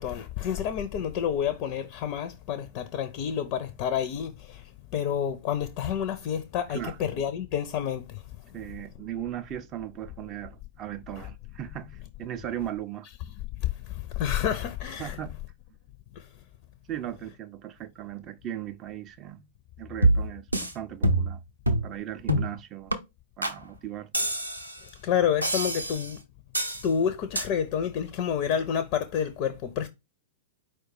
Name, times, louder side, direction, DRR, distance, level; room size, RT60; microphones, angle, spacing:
voice 1, 0.0-4.6 4.9-8.2 11.2-11.3 13.6-15.2 16.2-16.3 25.0-26.2 26.8-29.9, left 8 dB, 40° left, 0.4 m, -29 dB
voice 2, 8.5-13.1 15.0-15.4 16.9-19.5 19.8-21.4 21.8-22.9 23.4-24.1, right 11 dB, 30° right, 0.4 m, -37 dB
sound 1, 20.0-20.7 21.0-21.4 21.7-21.9 22.3-22.5 22.9-23.0 23.4-23.6 24.1-24.8 25.4-26.1 26.5-26.9 27.4-27.5, right 1 dB, 85° right, 0.6 m, -25 dB
4.5 x 2.2 x 4.4 m
figure-of-eight pair, 100°, 0 cm